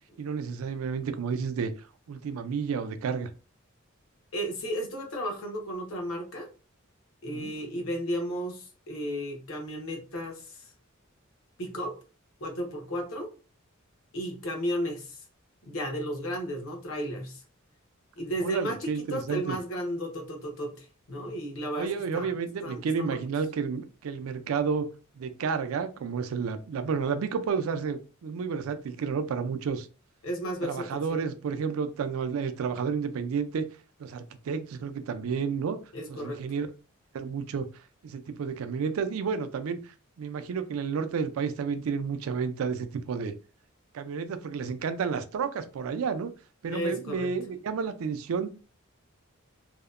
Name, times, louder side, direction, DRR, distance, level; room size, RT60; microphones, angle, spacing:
voice 1, 0.2-3.3 7.3-7.5 18.4-19.6 21.8-24.9 25.2-29.9 30.6-33.7 34.0-35.8 36.1-36.7 37.1-37.7 38.0-43.3 43.9-46.3 46.6-48.5, right 6 dB, 75° right, 0.4 m, -31 dB
voice 2, 4.3-6.5 7.2-10.6 11.6-12.0 12.4-13.3 14.1-15.2 15.6-17.4 18.2-22.3 22.6-23.2 30.2-31.2 35.9-36.4 46.7-47.3, equal, 75° left, 0.8 m, -34 dB
2.7 x 2.1 x 2.4 m
head